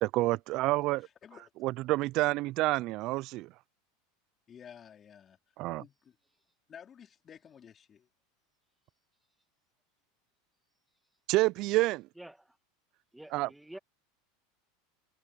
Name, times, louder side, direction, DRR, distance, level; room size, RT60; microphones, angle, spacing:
voice 1, 0.0-1.1 1.6-3.5 5.6-5.8 11.3-12.1 13.3-13.5, right 19 dB, 55° right, 0.5 m, -28 dB
voice 2, 1.0-1.5 4.5-6.2 6.7-8.1, left 8 dB, 30° left, 4.2 m, -53 dB
voice 3, 12.2-12.5 13.1-13.8, right 1 dB, 5° right, 1.6 m, -48 dB
hypercardioid pair, 100°, 0 cm